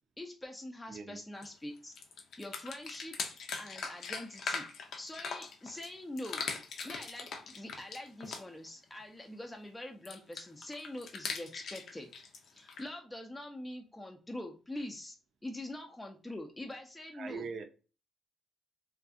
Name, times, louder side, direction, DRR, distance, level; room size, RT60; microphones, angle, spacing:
voice 1, 0.2-1.9 2.4-3.2 3.6-4.7 5.0-6.4 6.8-12.1 12.5-15.1 15.4-17.5, left 1 dB, 15° left, 0.4 m, -44 dB
voice 2, 0.9-1.2 17.1-17.6, right 5 dB, 60° right, 0.4 m, -41 dB
sound 1, 1.4-1.5 1.8-5.9 6.2-8.6 10.1-12.9, left 5 dB, 65° left, 0.5 m, -40 dB
2.5 x 2.3 x 2.5 m
cardioid pair, 90°, 0 cm